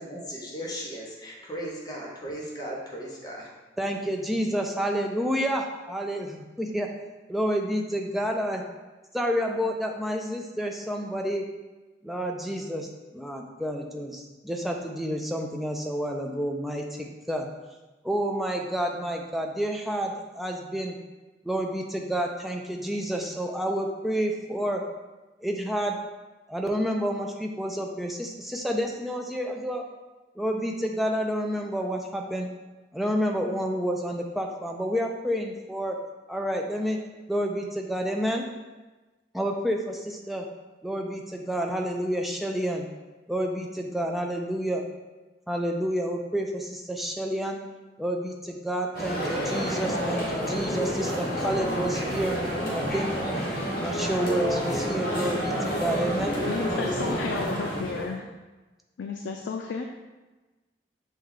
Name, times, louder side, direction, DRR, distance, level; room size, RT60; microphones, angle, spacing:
voice 1, 0.0-3.5, equal, 20° left, -3 dB, 0.7 m, -37 dB
voice 2, 3.8-6.9 7.3-8.6 9.1-11.4 12.0-17.5 18.0-20.9 21.4-24.8 25.4-26.0 26.5-29.8 30.4-32.5 32.9-36.0 36.3-37.0 37.3-38.4 39.3-40.5 40.8-42.9 43.3-44.8 45.5-47.6 48.0-52.4 52.7-53.1 53.7-56.4, equal, ahead, 1 dB, 0.3 m, -29 dB
sound 1, 48.9-58.1, equal, 50° left, 1.1 m, -29 dB
voice 3, 56.4-58.3 59.0-59.9, left 4 dB, 85° left, 3 dB, 0.3 m, -32 dB
6.3 x 2.2 x 3.6 m, 1.2 s
head